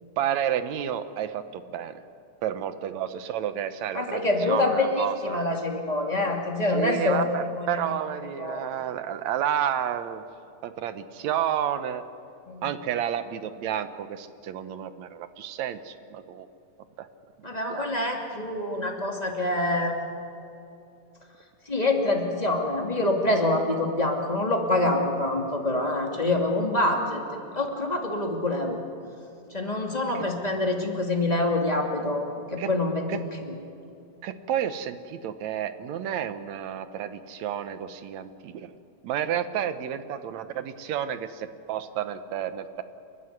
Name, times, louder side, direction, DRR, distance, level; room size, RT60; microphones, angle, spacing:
voice 1, 0.2-1.9 2.4-5.4 6.7-10.2 10.6-12.0 12.6-16.5 17.0-17.1 17.7-17.9 30.1-30.3 32.6-32.7 33.1-33.2 34.2-38.7 39.0-42.8, right 9 dB, 75° right, 11 dB, 2.1 m, -30 dB
voice 2, 3.9-7.3 7.5-7.8 8.4-8.7 12.5-12.7 17.4-20.0 21.7-27.2 27.6-28.8 29.5-33.5, left 2 dB, 15° left, 1 dB, 2.4 m, -26 dB
30.0 x 12.5 x 9.6 m, 2.7 s
omnidirectional pair, 3.3 m